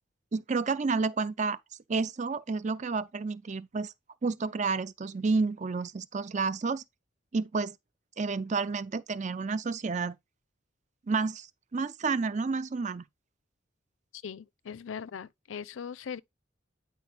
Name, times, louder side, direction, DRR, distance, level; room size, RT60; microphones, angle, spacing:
voice 1, 0.3-1.6 1.9-3.9 4.2-6.8 7.3-7.8 8.2-10.1 11.1-11.5 11.7-13.0, right 4 dB, 40° right, 0.5 m, -30 dB
voice 2, 14.1-16.2, left 7 dB, 90° left, 0.4 m, -40 dB
9.3 x 4.5 x 3.3 m
head